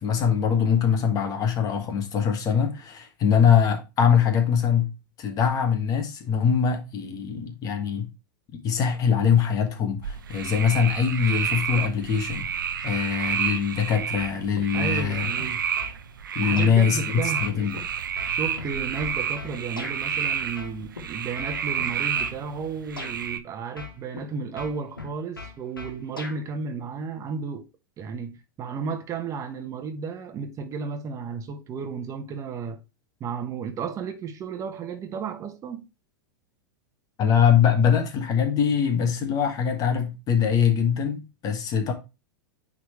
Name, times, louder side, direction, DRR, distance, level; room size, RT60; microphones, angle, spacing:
voice 1, 0.0-8.1 8.5-15.3 16.3-17.8 37.2-41.9, left 7 dB, 35° left, 1.6 m, -23 dB
sound 1, 10.0-23.4, right 8 dB, 75° right, 0.8 m, -30 dB
sound 2, 14.2-14.7 15.0-16.0 16.6-16.8 17.4-20.0 20.6-21.0 21.4-22.4 23.0-23.2 23.8-24.3 24.6-26.4, left 3 dB, 90° left, 1.6 m, -39 dB
voice 2, 14.7-15.6 16.4-17.5 18.3-27.6 28.0-32.8 33.2-35.9, right 5 dB, 30° right, 1.2 m, -33 dB
9.2 x 4.0 x 3.2 m
figure-of-eight pair, 95°, 11 cm